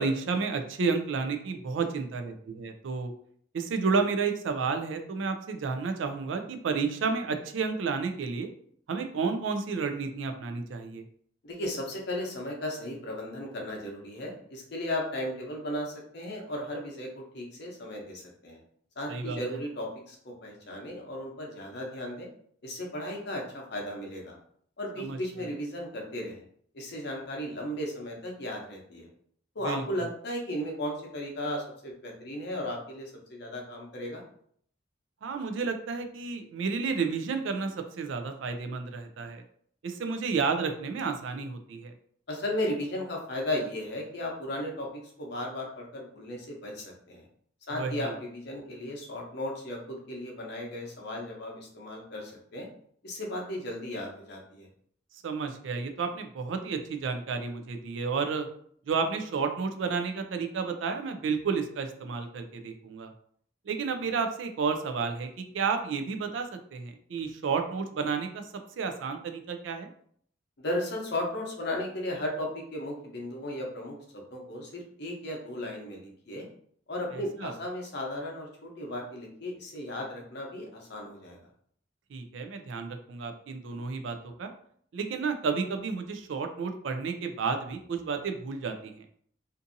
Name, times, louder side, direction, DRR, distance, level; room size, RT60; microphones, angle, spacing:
voice 1, 0.0-3.1 3.5-8.5 8.9-11.0 19.1-19.4 25.0-25.2 29.6-29.8 35.2-39.4 39.8-41.9 47.7-48.1 55.2-58.5 58.9-63.1 63.7-68.5 68.8-69.9 77.1-77.5 82.1-84.5 84.9-89.0, right 5 dB, 75° right, 6 dB, 0.4 m, -31 dB
voice 2, 11.4-18.6 19.0-22.3 22.6-24.4 24.8-26.4 26.7-29.1 29.5-34.2 42.3-44.9 45.2-47.2 47.7-52.7 53.0-54.7 70.6-76.5 76.9-81.4, left 1 dB, 60° left, 0 dB, 0.7 m, -35 dB
2.6 x 2.5 x 2.5 m, 0.62 s
head